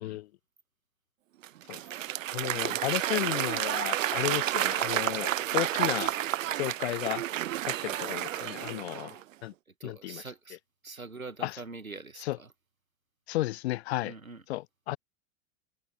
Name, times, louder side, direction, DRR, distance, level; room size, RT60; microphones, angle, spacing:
Applause / Crowd, 1.4-9.2, right 13 dB, 75° right, 0.5 m, -30 dB
voice 1, 2.3-6.1 6.6-7.2 7.6-9.5 9.8-10.2 11.4-11.6 12.2-12.4 13.3-14.1 14.5-15.0, left 17 dB, 55° left, 0.5 m, -33 dB
voice 2, 9.8-10.6 10.8-12.5 14.0-14.4, right 3 dB, 90° right, 1.9 m, -44 dB
figure-of-eight pair, 90°, 40 cm